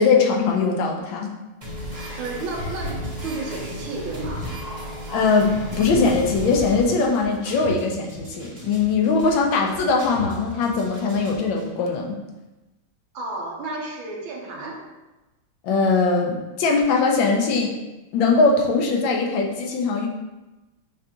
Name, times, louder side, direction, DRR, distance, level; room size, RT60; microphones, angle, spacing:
voice 1, 0.0-1.3 5.1-12.1 15.6-17.7 18.1-20.1, left 4 dB, 75° left, 1 dB, 1.4 m, -21 dB
sound 1, 1.6-11.6, equal, 25° right, 1.0 m, -34 dB
voice 2, 2.2-4.6 13.1-14.9, right 3 dB, 75° right, -2 dB, 1.6 m, -32 dB
6.8 x 2.5 x 2.8 m, 1.1 s
omnidirectional pair, 2.2 m